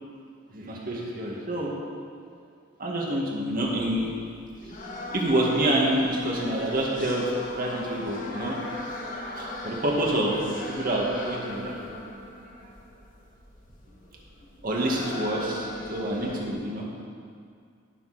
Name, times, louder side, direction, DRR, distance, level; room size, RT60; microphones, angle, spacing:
voice 1, 0.5-1.7 2.8-4.1 5.1-8.6 9.3-10.4 10.7-11.9 14.6-16.9, right 1 dB, 45° right, -3 dB, 2.1 m, -27 dB
sound 1, 3.6-16.5, left 1 dB, 45° left, 1.5 m, -38 dB
17.5 x 7.2 x 4.4 m, 2.2 s
head